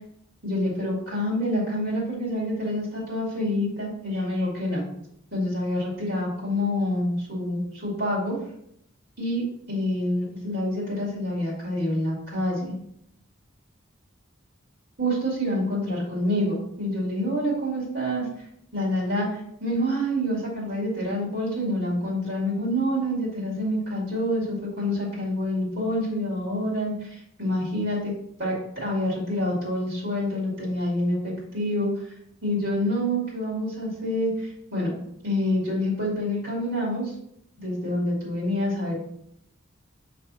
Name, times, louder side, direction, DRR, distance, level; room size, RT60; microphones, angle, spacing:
voice 1, 0.4-4.8 5.3-8.4 9.2-9.4 9.7-12.7 15.0-18.5 18.7-28.1 28.4-32.1 32.4-34.9 35.2-37.1 37.6-38.9, left 1 dB, 55° right, -4 dB, 2.3 m, -27 dB
7.5 x 3.4 x 4.2 m, 0.73 s
head